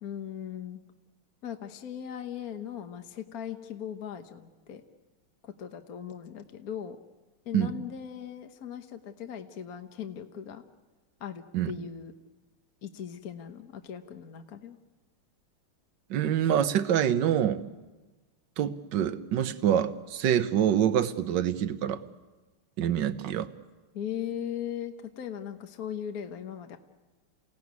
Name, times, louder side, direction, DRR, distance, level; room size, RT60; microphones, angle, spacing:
voice 1, 0.0-0.8 1.4-4.8 5.4-7.0 7.4-10.6 11.2-12.1 12.8-14.8 23.9-26.8, left 9 dB, 50° left, 7 dB, 1.4 m, -38 dB
voice 2, 16.1-17.6 18.6-22.0 22.8-23.5, right 10 dB, 60° right, 12 dB, 1.5 m, -26 dB
29.0 x 17.5 x 9.5 m, 1.2 s
omnidirectional pair, 2.3 m